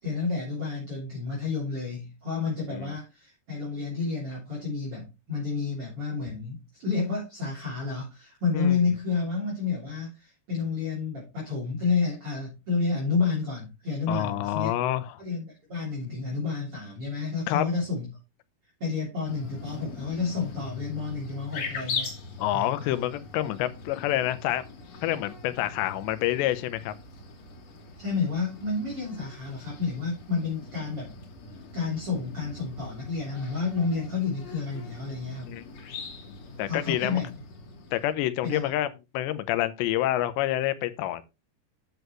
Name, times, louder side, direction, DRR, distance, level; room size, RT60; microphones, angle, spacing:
voice 1, 0.0-14.7 15.2-18.1 18.8-22.1 22.5-22.9 28.0-31.1 31.7-35.6 36.7-37.3 38.4-38.7, left 4 dB, 35° right, 4.0 m, -30 dB
voice 2, 14.1-15.2 17.5-17.7 22.4-24.6 25.0-26.9 35.4-35.6 36.6-37.2 37.9-38.9 39.1-41.2, left 14 dB, 85° left, 3.0 m, -27 dB
sound 1, 19.2-38.1, left 4 dB, 50° left, 3.7 m, -41 dB
10.0 x 7.9 x 3.1 m
omnidirectional pair, 4.9 m